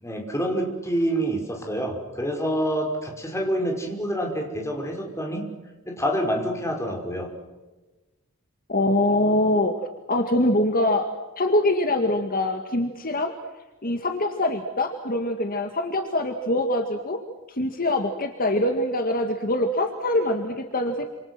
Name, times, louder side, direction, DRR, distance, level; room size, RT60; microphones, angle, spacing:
voice 1, 0.0-5.5 5.9-7.3, equal, 15° left, 2 dB, 5.5 m, -27 dB
voice 2, 8.7-11.1 11.4-13.3 13.8-17.2 17.5-21.1, left 1 dB, 45° left, 5 dB, 2.0 m, -24 dB
28.5 x 27.5 x 6.2 m, 1.2 s
head